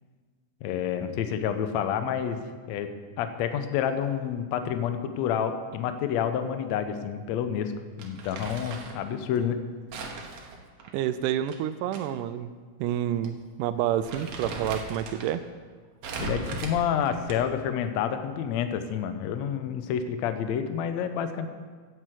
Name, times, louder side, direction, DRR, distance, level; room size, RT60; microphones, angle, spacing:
voice 1, 0.6-2.4 2.7-2.9 3.2-7.7 8.0-9.6 16.2-21.5, left 8 dB, 80° left, 8 dB, 1.6 m, -29 dB
Crumpling crinkling, 8.0-9.0 9.9-12.0 12.3-12.4 13.2-13.4 13.8-15.3 16.0-17.6, right 3 dB, 60° right, 1.9 m, -38 dB
voice 2, 10.9-12.5 12.8-15.4, right 11 dB, 85° right, 11 dB, 1.8 m, -29 dB
9.5 x 8.0 x 7.7 m, 1.5 s
omnidirectional pair, 4.2 m